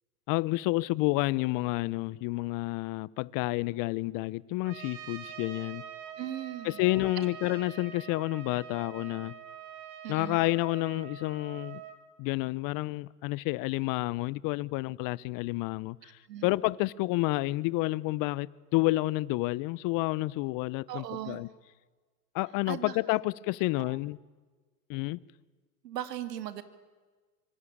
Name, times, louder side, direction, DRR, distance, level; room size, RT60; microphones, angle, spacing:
voice 1, 0.3-5.8 6.6-9.3 10.1-11.8 12.2-21.5 22.3-24.2 24.9-25.2, left 21 dB, 45° left, 0.9 m, -30 dB
Trumpet, 4.6-12.0, right 9 dB, 50° right, 4.4 m, -45 dB
voice 2, 6.2-6.8 7.2-7.3 10.0-10.4 16.0-16.5 20.9-21.4 22.7-23.2 23.8-24.0 25.8-26.6, right 12 dB, 75° right, 2.7 m, -38 dB
26.0 x 24.0 x 8.7 m
hypercardioid pair, 100°, 48 cm